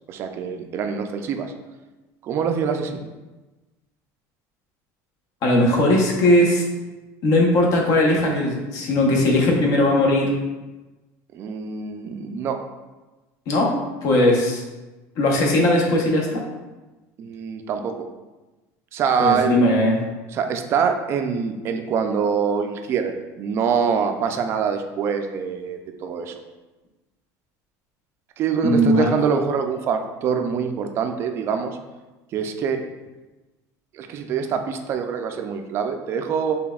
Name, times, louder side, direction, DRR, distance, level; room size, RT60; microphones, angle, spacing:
voice 1, 0.1-1.5 2.2-3.1 11.3-12.6 14.1-14.2 17.2-18.0 18.9-19.6 20.3-26.3 28.4-31.7 32.3-32.8 33.9-36.6, right 6 dB, 35° right, 5 dB, 0.4 m, -24 dB
voice 2, 5.4-6.6 7.2-10.3 13.5-13.8 14.0-14.6 15.2-16.4 19.2-20.0 28.6-29.1, left 1 dB, 55° left, 0 dB, 1.0 m, -18 dB
5.9 x 3.3 x 2.3 m, 1.1 s
cardioid pair, 165°, 7 cm